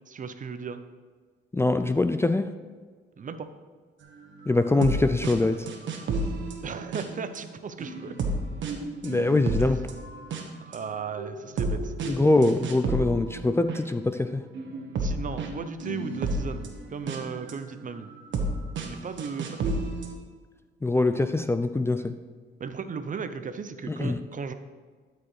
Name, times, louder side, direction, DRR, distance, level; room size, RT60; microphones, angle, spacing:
voice 1, 0.1-0.8 3.2-3.5 6.6-8.2 9.6-9.7 10.7-11.9 15.0-18.1 18.8-19.7 22.6-24.5, right 5 dB, 40° right, 10 dB, 0.7 m, -36 dB
voice 2, 1.5-2.5 4.5-5.7 9.0-9.8 12.0-14.4 20.8-22.1 23.9-24.2, left 2 dB, 10° left, 9 dB, 0.4 m, -23 dB
sound 1, 4.5-5.0 5.2-5.4 5.7-7.4 7.8-10.4 10.7-13.8 14.5-17.5 18.1-18.5 18.8-18.9 19.2-20.1, right 3 dB, 70° right, 1.4 m, -31 dB
12.5 x 5.0 x 4.8 m, 1.5 s
cardioid pair, 90°, 20 cm